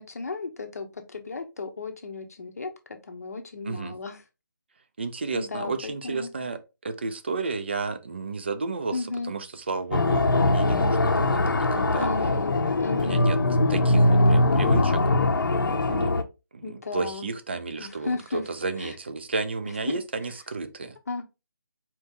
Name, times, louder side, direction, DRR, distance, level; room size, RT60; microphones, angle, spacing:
voice 1, 0.0-2.7 3.1-4.2 5.3-6.3 8.9-9.3 12.0-12.5 12.8-13.3 16.6-17.3 17.8-18.4 18.8-19.0 19.7-19.9 21.1-21.2, left 3 dB, 50° left, 0.7 m, -34 dB
voice 2, 5.0-6.6 6.8-12.1 12.9-13.4 13.7-15.0 15.9-16.2 16.5-21.0, right 4 dB, 30° right, 0.5 m, -32 dB
sound 1, 9.9-16.2, left 2 dB, 80° left, 0.7 m, -21 dB
4.4 x 2.7 x 3.4 m
hypercardioid pair, 175°, 11 cm